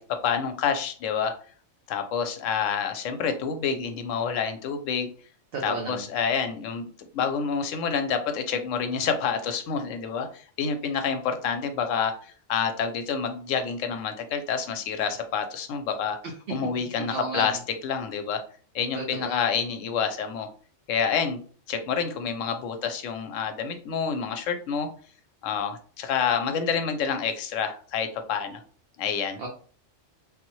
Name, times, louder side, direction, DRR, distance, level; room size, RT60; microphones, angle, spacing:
voice 1, 0.0-1.3 1.9-5.1 5.6-16.2 16.5-18.4 18.7-20.5 20.9-21.4 21.7-24.9 25.4-28.6 29.0-29.4, left 6 dB, 85° left, 7 dB, 0.9 m, -28 dB
voice 2, 5.5-5.9 17.0-17.5 19.0-19.4 29.4-29.5, right 3 dB, 60° right, 1 dB, 0.8 m, -32 dB
3.5 x 2.1 x 3.0 m, 0.43 s
omnidirectional pair, 1.3 m